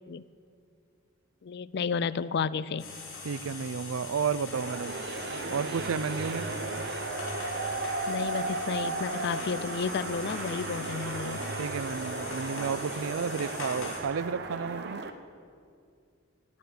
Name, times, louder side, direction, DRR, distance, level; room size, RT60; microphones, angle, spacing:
voice 1, 1.4-2.9 8.1-11.5, left 5 dB, 55° left, 18 dB, 0.4 m, -32 dB
sound 1, 2.8-14.0, left 3 dB, 70° left, 4.6 m, -42 dB
voice 2, 3.2-5.0 5.5-6.5 11.6-15.1, right 6 dB, 75° right, 18 dB, 0.4 m, -32 dB
sound 2, 4.5-15.1, right 3 dB, 50° right, 0.8 m, -35 dB
18.0 x 7.1 x 8.4 m, 2.3 s
head